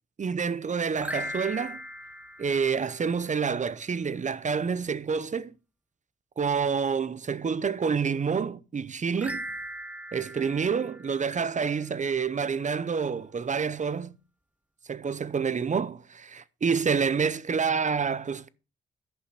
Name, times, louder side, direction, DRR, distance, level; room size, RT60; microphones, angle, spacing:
voice 1, 0.2-1.8 2.4-5.5 6.4-9.4 10.1-14.1 14.9-18.5, right 6 dB, 35° right, 0.7 m, -28 dB
sound 1, 0.9-3.4 9.1-11.8, equal, 5° right, 0.9 m, -39 dB
11.5 x 5.6 x 5.8 m
cardioid pair, 70°, 21 cm